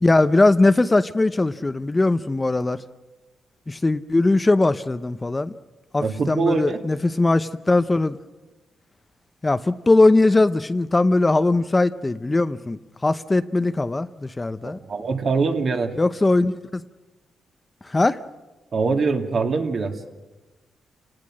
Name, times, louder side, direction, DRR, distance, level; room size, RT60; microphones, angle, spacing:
voice 1, 0.0-2.8 3.7-5.5 5.9-8.2 9.4-14.8 16.0-16.8 17.8-18.2, left 2 dB, 20° left, 11 dB, 0.7 m, -20 dB
voice 2, 6.0-6.8 14.6-15.9 18.7-20.0, right 4 dB, 55° right, 3 dB, 2.3 m, -23 dB
28.5 x 18.5 x 6.4 m, 1.2 s
cardioid pair, 85°, 0 cm